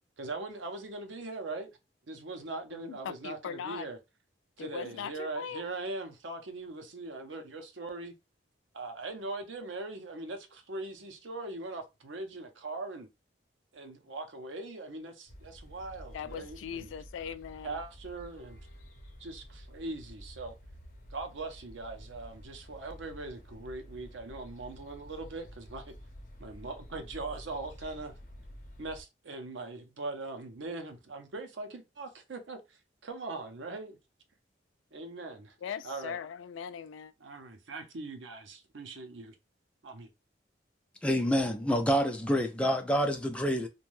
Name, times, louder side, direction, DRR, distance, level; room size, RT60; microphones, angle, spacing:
voice 1, 0.2-1.7 2.1-4.0 4.6-8.1 8.7-13.1 13.7-16.9 17.6-18.7 19.2-20.5 21.1-25.9 26.4-28.1 28.8-34.0 34.9-35.6 35.8-36.2 37.2-39.3 39.8-40.1, right 3 dB, 80° right, 0.6 m, -41 dB
voice 2, 2.7-3.9 4.6-5.7 16.1-17.8 35.6-37.1, left 7 dB, 90° left, 0.3 m, -40 dB
sound 1, 15.3-29.0, equal, 45° left, 0.8 m, -50 dB
voice 3, 41.0-43.7, equal, 5° left, 0.4 m, -27 dB
2.6 x 2.2 x 3.1 m
head